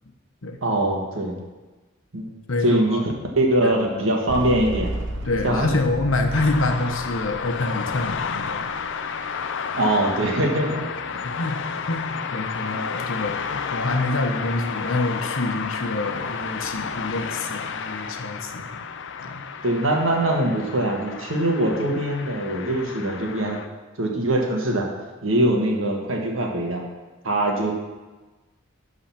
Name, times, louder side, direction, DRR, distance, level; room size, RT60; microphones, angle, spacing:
voice 1, 0.6-1.4 2.1-2.3 2.6-4.9 5.4-5.7 9.7-10.9 19.6-23.6 24.0-24.9 25.2-26.8 27.2-27.7, right 1 dB, 85° right, 1 dB, 1.5 m, -22 dB
voice 2, 2.5-3.0 3.6-4.1 5.2-8.8 11.2-11.6 11.9-18.8 19.2-19.4, left 2 dB, 80° left, 5 dB, 1.0 m, -27 dB
sound 1, 4.3-8.8, right 1 dB, 65° right, 0.8 m, -33 dB
sound 2, 6.3-23.7, left 6 dB, 65° left, 0.5 m, -31 dB
11.5 x 4.0 x 5.8 m, 1.2 s
head